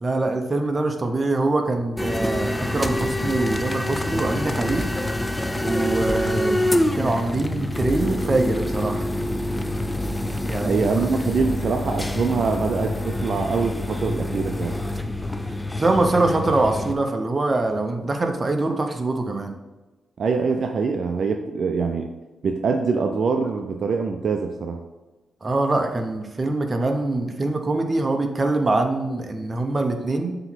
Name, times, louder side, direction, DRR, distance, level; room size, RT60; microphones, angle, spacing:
voice 1, 0.0-4.8 5.6-6.7 7.0-9.0 10.4-10.8 15.8-19.5 25.4-30.4, right 2 dB, 30° right, 4 dB, 0.8 m, -23 dB
sound 1, 2.0-16.9, left 1 dB, 10° left, 0.4 m, -26 dB
voice 2, 10.7-14.8 20.2-22.1 22.4-24.8, right 5 dB, 60° right, 5 dB, 0.5 m, -24 dB
7.7 x 3.0 x 4.4 m, 1.2 s
cardioid pair, 90°, 0 cm